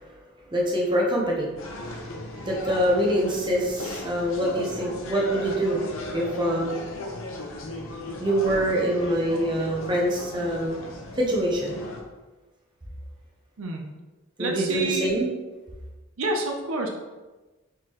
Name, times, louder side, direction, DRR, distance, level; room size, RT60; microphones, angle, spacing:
voice 1, 0.5-5.8 6.1-6.9 8.2-10.8 11.2-11.7 14.4-15.3, right 1 dB, 20° right, -3 dB, 0.8 m, -25 dB
sound 1, 1.6-12.0, left 1 dB, 70° left, 0.7 m, -36 dB
voice 2, 14.4-15.1 16.2-16.9, right 2 dB, 75° right, 2 dB, 0.6 m, -28 dB
4.6 x 3.7 x 3.0 m, 1.2 s
head